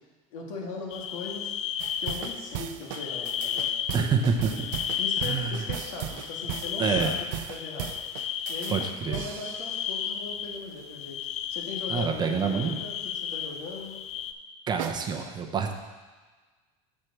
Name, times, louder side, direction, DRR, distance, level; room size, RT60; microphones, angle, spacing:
voice 1, 0.3-1.6 2.0-4.1 5.0-7.9 8.5-11.2 11.5-14.0, left 4 dB, 85° left, -1 dB, 2.1 m, -39 dB
Barbariga Istrian Summer Nature Sound, 0.9-2.6 2.9-4.0 4.3-14.3, left 9 dB, 40° left, 0.5 m, -33 dB
sound 1, 1.8-10.0 14.8-14.9, right 11 dB, 80° right, 0.5 m, -37 dB
voice 2, 3.9-4.7 5.2-5.6 6.8-7.1 8.7-9.2 11.9-12.8 14.7-15.7, right 6 dB, 25° right, 3 dB, 0.8 m, -27 dB
7.3 x 4.6 x 6.6 m, 1.3 s
supercardioid pair, 130°, 16 cm